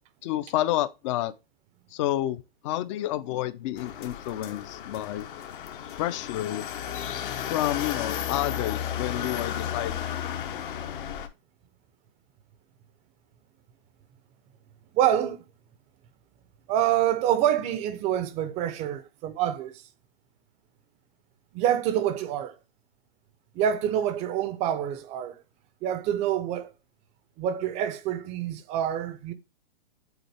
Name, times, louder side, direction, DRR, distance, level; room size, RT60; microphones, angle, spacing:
voice 1, 0.2-1.3 1.9-5.3 6.0-6.6 7.5-10.1, left 14 dB, 30° left, 0.5 m, -29 dB
sound 1, 3.8-11.3, left 9 dB, 60° left, 1.0 m, -33 dB
voice 2, 14.9-15.4 16.7-19.8 21.5-22.5 23.5-25.4 25.8-26.7 27.4-29.3, right 10 dB, 20° right, 0.5 m, -26 dB
8.1 x 4.2 x 3.3 m
hypercardioid pair, 130°, 30 cm